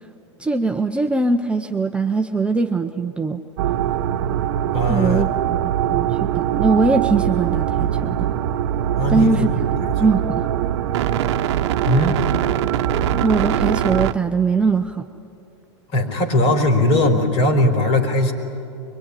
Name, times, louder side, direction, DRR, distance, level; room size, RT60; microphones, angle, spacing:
voice 1, 0.4-3.4 4.9-6.1 6.3-8.3 9.1-9.5 10.0-10.5 13.1-15.0, right 4 dB, 5° right, 4 dB, 0.7 m, -21 dB
sound 1, 3.6-14.1, right 10 dB, 65° right, 0.9 m, -22 dB
voice 2, 4.7-5.3 9.0-9.5 9.8-10.1 11.8-12.2 15.9-18.3, left 1 dB, 45° left, 5 dB, 4.2 m, -19 dB
23.0 x 22.0 x 10.0 m, 2.6 s
hypercardioid pair, 125°, 15 cm